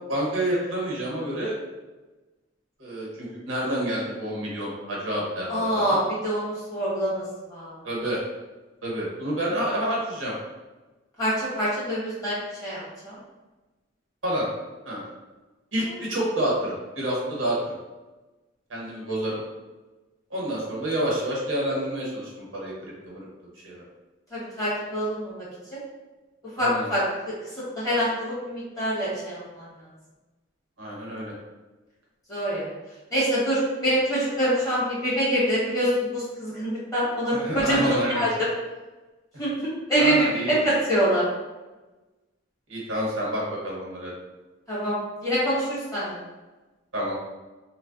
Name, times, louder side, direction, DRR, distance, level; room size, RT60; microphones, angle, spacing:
voice 1, 0.1-1.5 2.8-6.0 7.8-8.2 8.8-10.3 14.2-14.5 14.8-15.1 15.7-17.8 18.7-19.4 20.3-23.3 23.6-23.8 26.6-26.9 30.8-31.3 37.3-38.3 40.0-40.5 42.7-44.1 46.9-47.1, right 1 dB, 80° right, -4 dB, 1.1 m, -28 dB
voice 2, 5.5-7.2 7.5-7.7 11.2-12.4 12.6-13.1 15.9-16.0 24.3-25.4 25.7-25.8 26.6-27.0 27.7-29.6 32.3-32.7 33.1-38.3 39.4-41.2 44.7-44.9 45.2-46.2, equal, 20° left, -9 dB, 1.4 m, -25 dB
3.1 x 2.2 x 3.8 m, 1.2 s
head